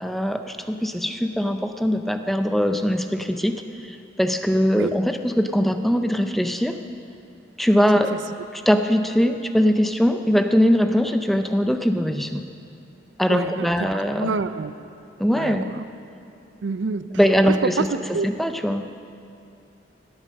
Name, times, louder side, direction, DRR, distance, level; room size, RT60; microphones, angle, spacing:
voice 1, 0.0-6.8 7.6-8.2 8.5-12.4 13.2-14.4 15.2-15.7 17.1-18.9, equal, ahead, 7 dB, 0.5 m, -21 dB
voice 2, 13.3-13.7 14.2-14.7 15.4-15.8 16.6-17.1 17.5-17.7 18.1-18.3, right 4 dB, 80° right, 12 dB, 0.5 m, -27 dB
17.0 x 8.8 x 6.4 m, 2.7 s
head